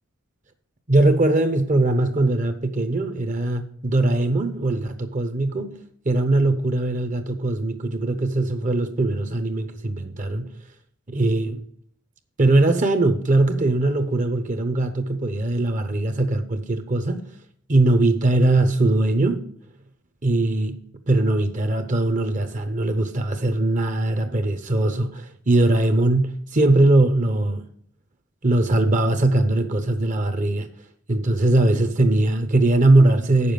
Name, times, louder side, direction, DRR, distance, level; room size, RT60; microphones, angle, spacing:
voice 1, 0.9-5.8 6.0-10.5 11.1-11.6 12.4-17.2 17.7-19.4 20.2-20.8 21.1-27.6 28.4-30.7 31.1-33.5, right 2 dB, 40° right, 0.8 m, -20 dB
8.4 x 7.0 x 5.3 m
head